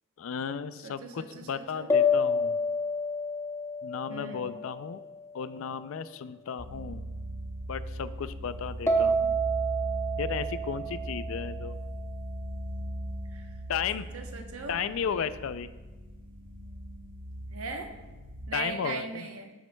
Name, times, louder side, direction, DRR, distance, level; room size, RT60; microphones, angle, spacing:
voice 1, 0.2-2.6 3.8-5.0 5.3-7.0 7.7-9.4 10.2-11.8 13.7-14.1 14.7-15.7 18.5-19.3, left 7 dB, 75° left, 14 dB, 0.4 m, -34 dB
voice 2, 0.8-1.9 4.1-4.5 13.3-13.5 13.9-14.8 17.5-17.9 18.5-19.5, right 3 dB, 85° right, 4 dB, 0.9 m, -39 dB
sound 1, 1.9-5.4 8.9-11.9, left 1 dB, 15° left, 0.7 m, -29 dB
sound 2, 6.6-18.4, equal, 25° right, 1.6 m, -39 dB
11.5 x 7.5 x 2.2 m, 1.2 s
head